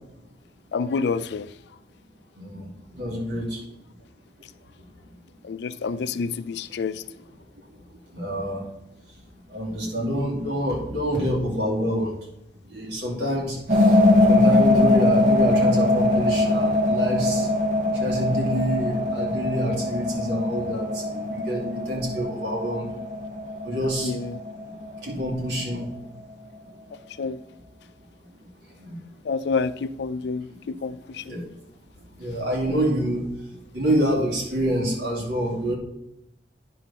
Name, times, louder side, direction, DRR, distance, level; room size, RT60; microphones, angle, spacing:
voice 1, 0.7-1.5 5.4-7.0 24.0-24.4 27.2-27.4 29.3-31.2, left 4 dB, 70° left, 0.4 m, -28 dB
voice 2, 2.4-3.6 8.1-8.6 9.5-12.1 12.6-14.0 14.3-17.5 17.9-22.9 23.6-24.1 25.0-25.9 28.8-28.9 31.2-31.4 32.2-33.3 33.7-35.8, equal, 80° right, 2.7 m, -27 dB
sound 1, 13.7-25.5, left 2 dB, 45° right, 0.9 m, -22 dB
9.9 x 5.7 x 3.6 m
head